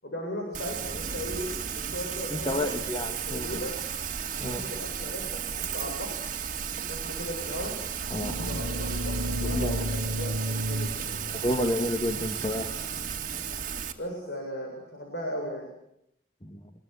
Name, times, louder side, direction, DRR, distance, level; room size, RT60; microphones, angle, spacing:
voice 1, 0.0-2.8 3.3-3.8 4.5-6.2 6.9-7.8 8.4-11.3 14.0-15.7, equal, 80° left, 0 dB, 7.5 m, -37 dB
Rain, 0.5-13.9, right 7 dB, 45° right, 2.4 m, -34 dB
voice 2, 2.3-3.7 4.4-4.7 8.1-8.6 9.4-9.9 11.4-13.0 16.4-16.6, left 1 dB, 30° left, 3 dB, 1.8 m, -31 dB
sound 1, 7.9-13.5, equal, 90° right, 1.6 m, -34 dB
25.5 x 22.0 x 8.3 m, 0.77 s
head